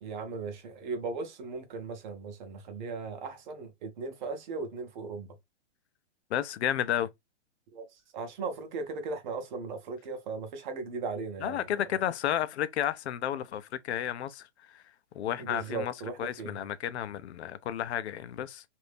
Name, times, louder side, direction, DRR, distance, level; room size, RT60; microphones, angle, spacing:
voice 1, 0.0-5.3 7.7-7.9 8.1-11.6 15.4-16.5, right 4 dB, 40° right, 0.8 m, -37 dB
voice 2, 6.3-7.1 11.4-14.8 15.1-18.6, left 10 dB, 65° left, 0.6 m, -32 dB
2.7 x 2.6 x 3.4 m
hypercardioid pair, 155°, 36 cm